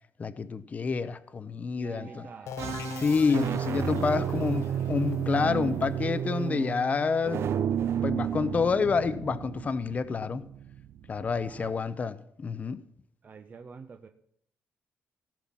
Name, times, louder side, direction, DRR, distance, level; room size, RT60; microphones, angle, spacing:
voice 1, 0.2-2.3 3.0-4.6 4.9-7.5 8.0-10.4 11.1-12.8, left 5 dB, 30° left, 0.7 m, -28 dB
voice 2, 1.8-2.6 4.0-4.9 11.4-11.7 13.2-14.1, right 5 dB, 35° right, 0.8 m, -46 dB
sound 1, 1.9-2.3 3.1-11.7, right 9 dB, 55° right, 0.5 m, -32 dB
sound 2, 2.5-8.0, left 7 dB, 70° left, 0.7 m, -45 dB
Musical instrument, 2.6-4.7, right 6 dB, 90° right, 2.8 m, -42 dB
17.5 x 5.8 x 7.2 m
cardioid pair, 140°, 5 cm